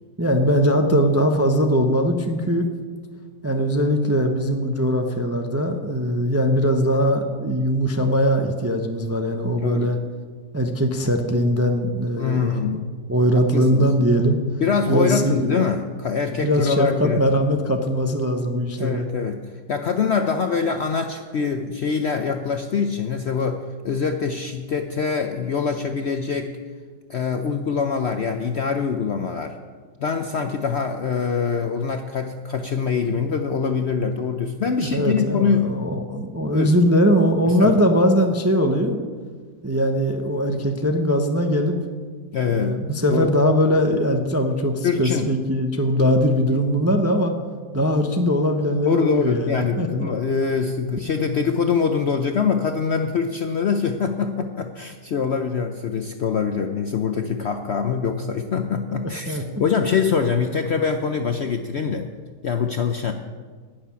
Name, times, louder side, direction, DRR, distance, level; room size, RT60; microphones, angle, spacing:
voice 1, 0.2-2.7 3.4-10.0 10.5-12.6 13.1-14.4 14.9-15.6 16.3-19.1 34.8-39.0 39.6-41.8 42.5-47.3 47.7-50.1 59.3-59.4, equal, 15° right, 4 dB, 0.5 m, -21 dB
voice 2, 12.2-12.8 13.5-13.9 14.6-17.2 18.8-19.4 19.7-26.6 27.1-29.6 30.0-35.8 36.5-36.8 37.5-37.7 42.3-42.7 43.1-43.3 44.8-45.3 48.8-62.1 62.4-63.1, left 6 dB, 60° left, 6 dB, 0.7 m, -24 dB
11.5 x 6.7 x 9.6 m, 1.5 s
omnidirectional pair, 1.7 m